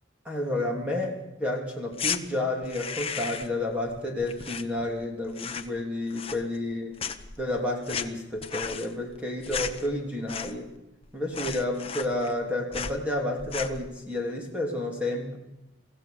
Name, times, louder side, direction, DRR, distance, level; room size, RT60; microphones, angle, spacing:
voice 1, 0.2-6.9 7.4-10.7 11.1-15.4, left 1 dB, 5° right, -1 dB, 3.1 m, -30 dB
sound 1, 1.9-2.2 2.6-3.6 3.9-5.0 5.3-5.8 6.1-6.7 7.0-10.8 11.0-11.1 11.3-12.4 12.7-13.0 13.4-13.9, left 6 dB, 30° left, 1.0 m, -34 dB
25.0 x 15.5 x 6.9 m, 0.96 s
head